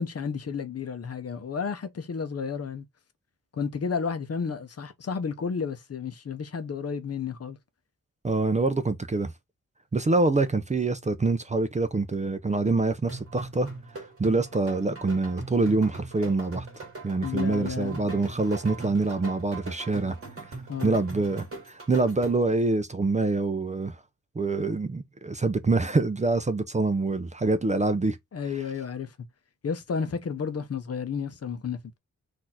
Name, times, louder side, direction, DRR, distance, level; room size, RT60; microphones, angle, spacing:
voice 1, 0.0-2.8 3.5-7.6 17.2-18.0 20.7-20.9 28.3-29.2 29.6-32.0, left 6 dB, 50° left, 0.7 m, -32 dB
voice 2, 8.2-9.3 9.9-13.7 14.0-16.7 17.0-20.2 20.5-20.6 20.8-24.0 24.4-28.2, right 3 dB, 25° right, 0.4 m, -25 dB
sound 1, 13.1-22.6, right 3 dB, 50° right, 1.9 m, -41 dB
4.2 x 2.6 x 4.2 m
wide cardioid pair, 160°, 30 cm